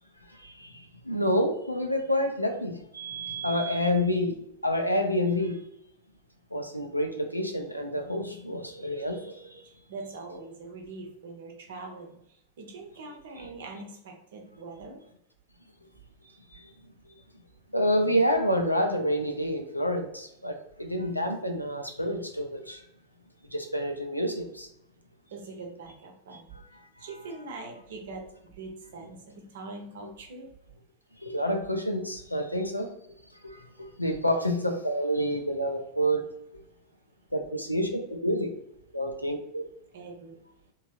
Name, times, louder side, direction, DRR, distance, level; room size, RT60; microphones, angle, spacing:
voice 1, 0.3-4.3 4.6-5.6 6.5-9.6 16.5-16.7 17.7-22.8 23.5-24.7 31.2-32.9 33.4-36.2 37.3-38.5 38.9-39.6, equal, 90° left, 0.4 m, -28 dB
voice 2, 9.6-15.0 25.3-26.5 27.0-30.5 39.9-40.4, right 3 dB, 60° right, 0.6 m, -43 dB
3.0 x 2.7 x 2.4 m
figure-of-eight pair, 90°, 0 cm